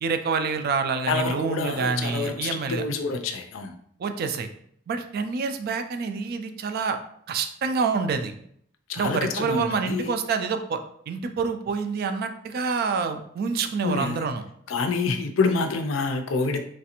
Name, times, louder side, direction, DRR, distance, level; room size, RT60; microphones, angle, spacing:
voice 1, 0.0-2.8 4.0-4.5 4.9-7.0 7.3-8.3 9.0-14.4, right 5 dB, 50° right, 7 dB, 0.3 m, -27 dB
voice 2, 1.1-3.8 8.9-10.1 13.8-14.3 14.7-16.6, left 4 dB, 80° left, 6 dB, 0.4 m, -27 dB
3.2 x 2.4 x 2.8 m, 0.67 s
head